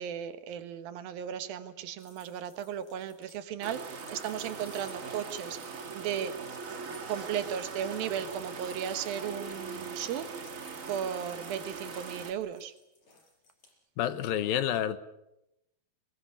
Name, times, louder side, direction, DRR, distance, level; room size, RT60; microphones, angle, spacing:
voice 1, 0.0-6.4 7.1-10.3 10.9-12.7, right 9 dB, 75° right, 3.0 m, -36 dB
sound 1, 2.0-13.7, left 4 dB, 50° left, 6.5 m, -59 dB
sound 2, 3.6-12.3, right 4 dB, 50° right, 0.9 m, -41 dB
voice 2, 14.0-15.0, left 10 dB, 75° left, 2.7 m, -29 dB
23.0 x 20.5 x 8.5 m
omnidirectional pair, 4.3 m